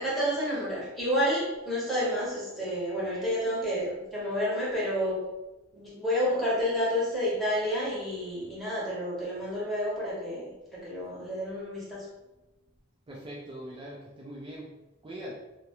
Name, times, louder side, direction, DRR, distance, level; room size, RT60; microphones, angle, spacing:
voice 1, 0.0-5.2 5.7-12.0, equal, ahead, -8 dB, 0.9 m, -30 dB
voice 2, 13.1-14.7 15.0-15.3, right 1 dB, 25° right, -4 dB, 0.4 m, -41 dB
2.4 x 2.1 x 2.8 m, 1.0 s
head